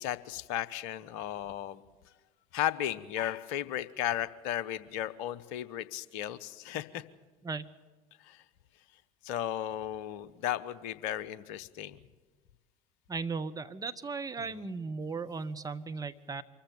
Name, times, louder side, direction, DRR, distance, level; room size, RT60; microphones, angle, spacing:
voice 1, 0.0-1.8 2.5-7.0 8.2-8.4 9.2-12.0, left 11 dB, 60° left, 17 dB, 0.9 m, -35 dB
voice 2, 13.1-16.4, right 4 dB, 20° right, 8 dB, 1.0 m, -36 dB
24.5 x 14.5 x 8.9 m, 1.3 s
figure-of-eight pair, 65°, 20 cm